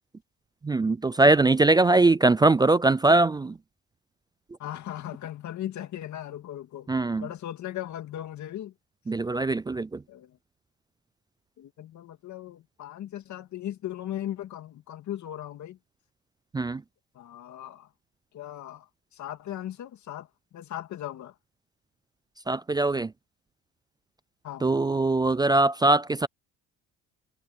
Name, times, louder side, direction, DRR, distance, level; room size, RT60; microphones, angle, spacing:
voice 1, 0.6-3.6 6.9-7.3 9.1-10.0 16.5-16.8 22.5-23.1 24.6-26.3, right 2 dB, 15° right, 0.3 m, -21 dB
voice 2, 4.6-7.0 7.2-8.7 10.1-10.4 11.6-15.8 17.1-17.9 18.3-20.3 20.5-21.3 24.4-24.7, left 12 dB, 60° left, 2.1 m, -38 dB
cardioid pair, 120°, 33 cm